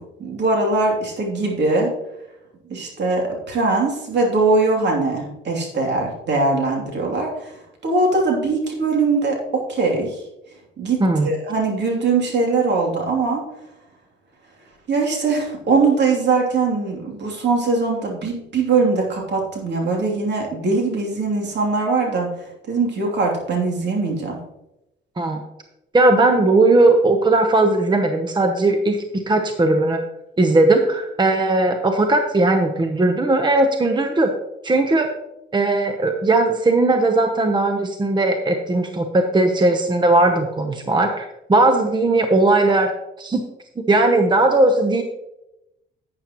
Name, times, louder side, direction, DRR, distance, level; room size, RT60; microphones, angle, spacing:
voice 1, 0.0-1.9 2.7-7.5 7.8-10.2 10.8-13.4 14.9-22.3 22.7-24.4, right 3 dB, 60° right, 0 dB, 3.0 m, -21 dB
voice 2, 11.0-11.3 25.2-25.4 25.9-30.0 30.4-34.3 34.6-35.1 35.5-42.9 43.2-43.4 43.9-45.0, right 2 dB, 20° right, 5 dB, 0.9 m, -18 dB
11.0 x 8.7 x 3.0 m, 0.90 s
cardioid pair, 90°, 20 cm